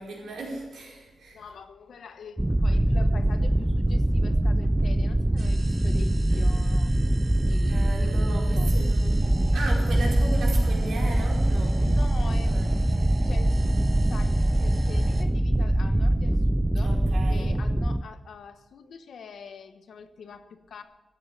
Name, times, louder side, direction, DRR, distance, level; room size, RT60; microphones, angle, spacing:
voice 1, 0.0-1.4 7.7-9.2 9.5-11.8 12.5-12.7 16.8-17.5, right 2 dB, 85° right, -2 dB, 4.9 m, -36 dB
voice 2, 1.3-6.9 7.4-8.7 11.8-16.9 17.3-20.8, left 6 dB, 70° left, 9 dB, 1.1 m, -45 dB
sound 1, 2.4-18.0, right 1 dB, 10° right, 0.4 m, -23 dB
sound 2, 5.4-15.3, right 4 dB, 50° right, 1.3 m, -46 dB
14.0 x 8.3 x 9.0 m, 1.1 s
wide cardioid pair, 125°, 0 cm